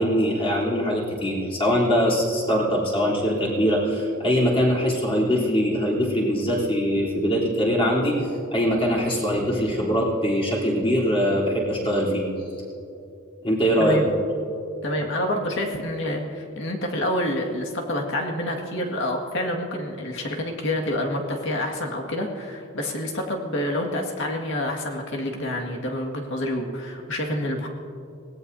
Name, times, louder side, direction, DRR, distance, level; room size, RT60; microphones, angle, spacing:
voice 1, 0.0-12.3 13.4-14.2, equal, 25° left, -5 dB, 3.6 m, -22 dB
voice 2, 13.8-14.1 14.8-27.7, left 1 dB, 65° left, 1 dB, 2.1 m, -28 dB
24.5 x 18.0 x 2.8 m, 2.7 s
head